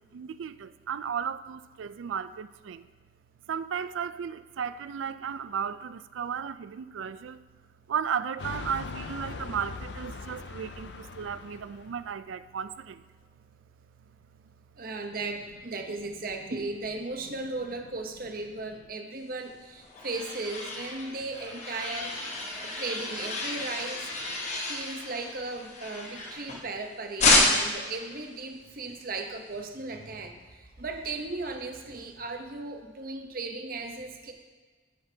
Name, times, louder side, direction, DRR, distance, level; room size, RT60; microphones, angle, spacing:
voice 1, 0.0-2.9 3.5-7.4 7.9-13.0, right 7 dB, 80° right, 14 dB, 0.4 m, -35 dB
sound 1, 8.4-12.1, left 4 dB, 60° left, 0.5 m, -40 dB
voice 2, 14.8-24.1 24.7-34.3, right 3 dB, 45° right, 4 dB, 0.8 m, -36 dB
sound 2, 19.5-26.8 27.2-27.9, left 2 dB, 35° left, 1.1 m, -29 dB
9.4 x 8.9 x 2.8 m, 1.4 s
head